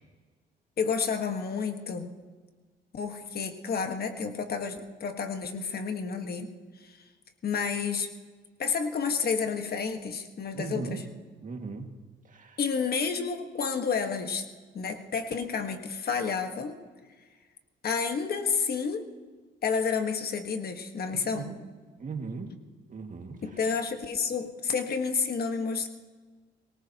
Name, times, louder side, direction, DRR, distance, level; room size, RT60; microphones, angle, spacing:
voice 1, 0.8-2.1 2.9-6.5 6.8-7.0 7.4-8.1 8.6-11.0 12.6-14.4 14.7-16.8 17.8-19.0 19.6-21.5 23.4-25.9, left 5 dB, 50° left, 6 dB, 1.6 m, -30 dB
voice 2, 10.5-11.0 11.4-12.0 12.3-12.6 21.1-21.5 22.0-22.5 22.9-23.4, right 4 dB, 40° right, 4 dB, 2.1 m, -38 dB
24.5 x 18.5 x 3.0 m, 1.4 s
cardioid pair, 90°, 20 cm